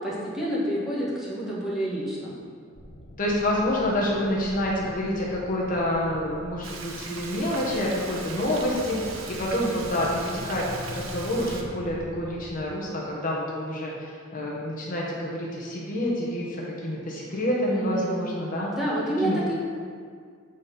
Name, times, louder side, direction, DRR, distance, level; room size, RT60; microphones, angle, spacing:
voice 1, 0.0-2.4 17.7-18.3 18.7-19.5, right 1 dB, ahead, -8 dB, 1.5 m, -29 dB
sound 1, 2.7-12.6, left 1 dB, 70° left, 1.1 m, -43 dB
voice 2, 3.2-10.6 10.9-18.7 19.2-19.5, left 1 dB, 40° left, -4 dB, 1.1 m, -28 dB
Frying (food), 6.6-11.6, right 4 dB, 70° right, 0.8 m, -39 dB
8.1 x 4.2 x 5.3 m, 2.1 s
head